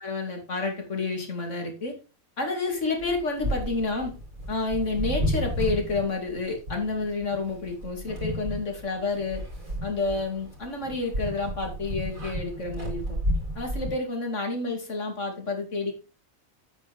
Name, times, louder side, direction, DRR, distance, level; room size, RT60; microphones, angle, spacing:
voice 1, 0.0-2.0 2.4-4.1 4.5-9.4 9.8-13.2 13.5-15.9, left 3 dB, 60° left, 3 dB, 2.9 m, -29 dB
sound 1, 3.0-13.9, equal, 70° right, 4.7 m, -32 dB
9.0 x 8.3 x 3.5 m, 0.31 s
omnidirectional pair, 1.5 m